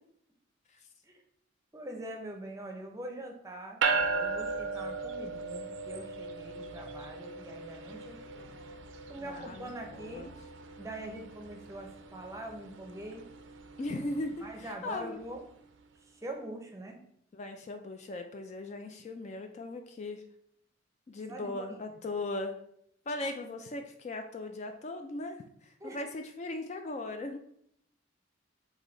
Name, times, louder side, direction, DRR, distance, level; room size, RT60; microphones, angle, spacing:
voice 1, 1.7-8.6 9.1-10.3 10.8-13.2 14.4-15.4 16.0-17.0 21.3-21.8 25.8-26.0, right 1 dB, 15° right, 2 dB, 0.6 m, -43 dB
sound 1, 3.8-15.4, right 4 dB, 75° right, 0.5 m, -37 dB
voice 2, 9.2-10.3 13.8-15.2 17.3-20.2 21.1-22.5 23.1-27.4, left 2 dB, 35° left, 6 dB, 0.3 m, -38 dB
4.8 x 2.7 x 3.9 m, 0.70 s
head